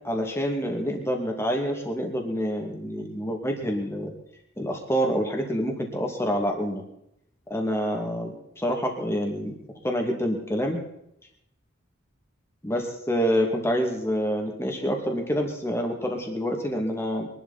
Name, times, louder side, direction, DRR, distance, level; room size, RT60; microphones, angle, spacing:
voice 1, 0.0-4.1 4.6-6.8 7.5-9.6 9.8-10.8 12.6-17.3, equal, 10° left, 2 dB, 2.5 m, -27 dB
23.5 x 11.5 x 4.3 m, 0.79 s
head